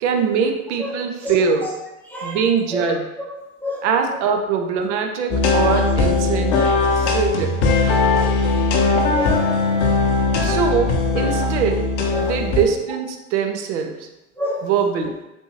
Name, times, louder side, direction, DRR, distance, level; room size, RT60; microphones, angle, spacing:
voice 1, 0.0-1.7 2.2-3.0 3.8-6.6 7.0-7.6 10.4-11.9 12.2-14.1 14.6-15.1, right 6 dB, 55° right, 5 dB, 0.6 m, -22 dB
voice 2, 0.8-1.7 2.1-2.4 2.7-3.0 3.3-4.2 5.6-5.8 6.2-6.3 6.6-7.2 8.0-8.3 8.8-8.9 9.1-9.5 11.2-11.4 12.1-12.4 14.4-14.7, left 1 dB, 5° left, -5 dB, 0.4 m, -30 dB
sound 1, 5.3-12.7, left 3 dB, 55° left, 0.7 m, -19 dB
3.4 x 2.7 x 3.0 m, 0.98 s
figure-of-eight pair, 80°, 43 cm